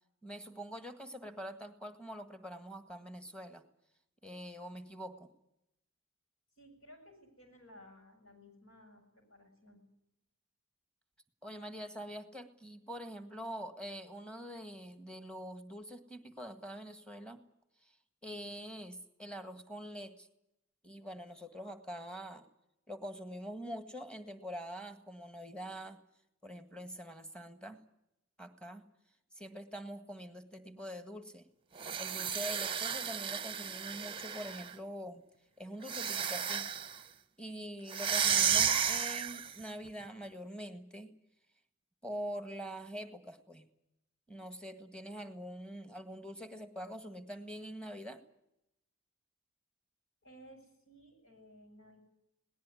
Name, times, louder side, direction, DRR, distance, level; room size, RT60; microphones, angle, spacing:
voice 1, 0.2-3.6 4.2-5.3 11.4-17.4 17.8-17.9 18.2-20.3 20.8-22.5 22.9-26.0 26.4-27.8 28.4-28.8 29.3-31.5 32.0-35.2 35.6-36.7 37.4-41.1 42.0-43.7 44.3-48.2, equal, 5° left, 8 dB, 1.7 m, -45 dB
voice 2, 6.6-9.8 50.2-52.0, equal, 85° left, 5 dB, 7.7 m, -57 dB
sound 1, 31.8-34.7 35.8-37.0 37.9-39.6, right 8 dB, 25° right, 0.8 m, -33 dB
19.5 x 19.0 x 9.8 m, 0.84 s
head